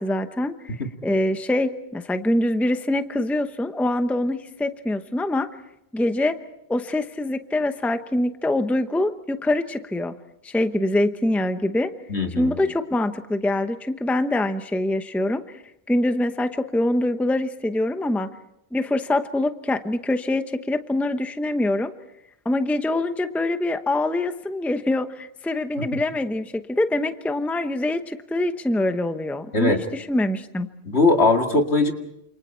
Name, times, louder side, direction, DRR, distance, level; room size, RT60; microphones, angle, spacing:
voice 1, 0.0-0.8 1.0-5.5 5.9-6.4 6.7-10.1 10.4-11.9 12.4-15.6 15.9-18.3 18.7-21.9 22.4-30.7, left 1 dB, ahead, 9 dB, 0.8 m, -24 dB
voice 2, 12.1-12.6 29.5-29.8 30.8-31.9, left 3 dB, 70° left, 3 dB, 2.5 m, -20 dB
28.5 x 28.0 x 4.5 m, 0.80 s
omnidirectional pair, 1.1 m